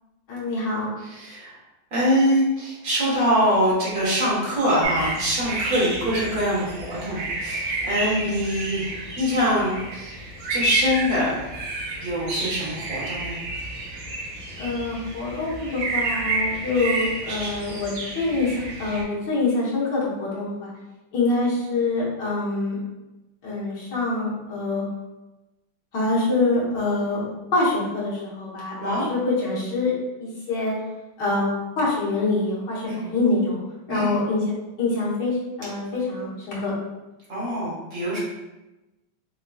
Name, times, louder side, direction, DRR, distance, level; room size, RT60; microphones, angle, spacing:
voice 1, 0.3-0.9 8.0-8.2 14.6-20.7 21.1-22.8 23.4-24.8 25.9-29.9 30.2-30.7 31.2-33.6 33.9-34.4 34.8-36.7, left 2 dB, 60° left, -7 dB, 1.7 m, -25 dB
voice 2, 1.0-1.5 1.9-8.9 9.2-10.1 10.5-11.3 12.0-13.4 28.8-29.1 32.9-33.0 33.9-34.1 37.3-38.2, equal, 45° right, -7 dB, 1.5 m, -24 dB
sound 1, 4.8-19.0, right 2 dB, 65° right, 0.8 m, -30 dB
3.9 x 3.0 x 2.3 m, 1.0 s
omnidirectional pair, 2.3 m